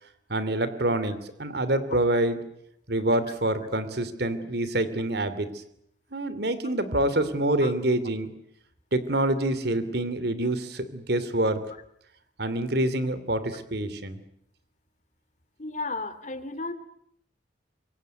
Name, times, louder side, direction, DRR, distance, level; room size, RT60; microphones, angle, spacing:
voice 1, 0.3-2.4 2.9-5.5 6.1-8.3 8.9-11.6 12.4-14.2, right 1 dB, 60° right, 13 dB, 2.9 m, -26 dB
voice 2, 15.6-16.7, left 3 dB, 40° left, 11 dB, 2.6 m, -34 dB
25.5 x 22.5 x 9.5 m, 0.74 s
head